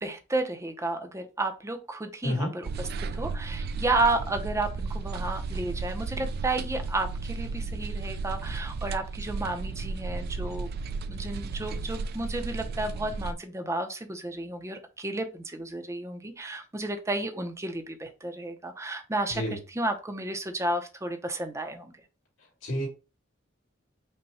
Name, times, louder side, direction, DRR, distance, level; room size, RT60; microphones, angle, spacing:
voice 1, 0.0-10.7 11.1-21.9, right 2 dB, 15° right, 0.6 m, -32 dB
voice 2, 2.2-2.5 19.3-19.6 22.6-22.9, left 1 dB, 85° left, 2.5 m, -29 dB
sound 1, 2.6-13.3, right 4 dB, 55° right, 0.4 m, -34 dB
5.4 x 2.2 x 4.1 m
head